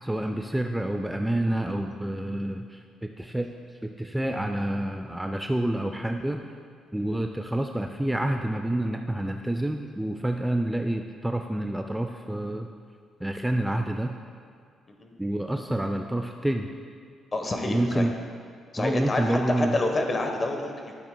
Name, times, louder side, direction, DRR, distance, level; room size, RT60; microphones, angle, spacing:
voice 1, 0.0-3.5 3.8-6.5 6.9-12.7 13.2-14.1 15.2-16.7 17.7-18.1 18.8-19.8, right 1 dB, 5° right, 4 dB, 0.4 m, -28 dB
voice 2, 17.3-18.1 18.7-20.9, left 2 dB, 30° left, 3 dB, 1.1 m, -28 dB
12.0 x 8.3 x 2.3 m, 2.2 s
cardioid pair, 90°, 0 cm